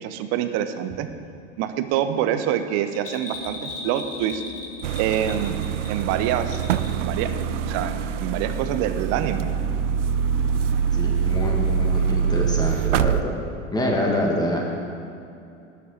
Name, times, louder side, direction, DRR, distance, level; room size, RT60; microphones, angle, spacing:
voice 1, 0.0-1.1 1.6-4.4 5.0-5.6 5.9-6.6 6.9-9.5, right 10 dB, 40° right, 10 dB, 0.9 m, -26 dB
Bell, 2.9-7.1 7.4-7.5, left 3 dB, 35° left, 2.4 m, -38 dB
sound 1, 3.3-13.2, left 6 dB, 55° left, 1.1 m, -41 dB
sound 2, 4.8-13.2, right 8 dB, 70° right, 0.5 m, -24 dB
voice 2, 10.9-13.3 13.7-14.6, left 1 dB, 10° left, -1 dB, 2.2 m, -26 dB
11.5 x 6.8 x 6.6 m, 2.7 s
figure-of-eight pair, 85°, 38 cm